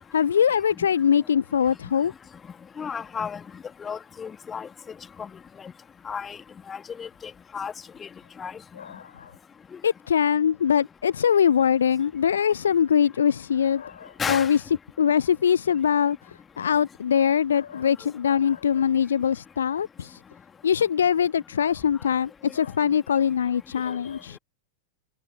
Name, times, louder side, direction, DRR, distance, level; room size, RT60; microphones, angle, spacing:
voice 1, 0.1-2.1 8.8-9.3 9.8-14.6 15.0-20.2 20.6-24.4, left 8 dB, 65° left, 0.3 m, -23 dB
voice 2, 2.8-3.4 3.8-4.7 5.2-5.3 6.1-6.4 6.7-7.7 8.0-8.1 8.4-8.5 14.2-14.5 23.9-24.0, left 6 dB, 20° left, 2.2 m, -33 dB
figure-of-eight pair, 90°, 0 cm